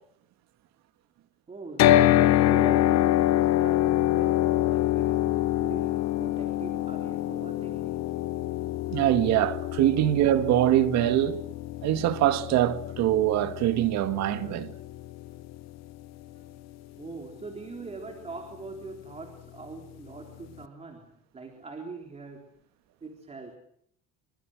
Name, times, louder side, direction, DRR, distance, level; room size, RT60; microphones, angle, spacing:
voice 1, 1.5-8.0 17.0-22.5 23.0-23.6, right 3 dB, 20° right, 3.7 m, -42 dB
sound 1, 1.8-15.9, left 14 dB, 60° left, 1.1 m, -26 dB
voice 2, 8.9-11.4 11.8-14.7, right 13 dB, 65° right, 2.0 m, -23 dB
27.0 x 25.5 x 6.5 m
cardioid pair, 140°, 29 cm